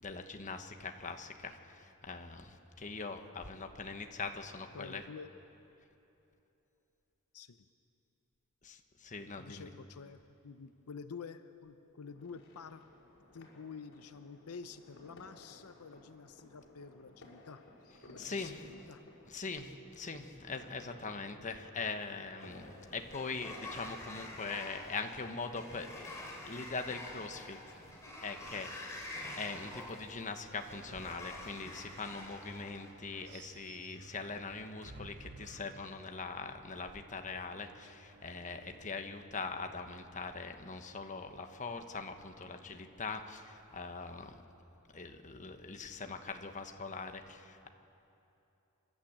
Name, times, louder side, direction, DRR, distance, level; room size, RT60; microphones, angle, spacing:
voice 1, 0.0-5.0 8.6-9.7 18.2-18.7 19.3-26.1 26.4-27.6 27.9-28.0 28.2-29.1 29.3-44.4 44.9-47.7, left 4 dB, 35° left, 6 dB, 1.2 m, -42 dB
voice 2, 4.7-5.3 7.3-7.6 9.4-12.8 13.3-17.6 18.1-19.0, left 5 dB, 80° left, 10 dB, 0.7 m, -49 dB
sound 1, 12.0-23.7, left 1 dB, 60° left, 5.7 m, -58 dB
Sliding door, 22.4-32.9, left 1 dB, 15° left, 3.9 m, -47 dB
sound 2, 30.4-38.9, right 3 dB, 50° right, 0.9 m, -56 dB
29.5 x 12.0 x 8.8 m, 2.9 s
head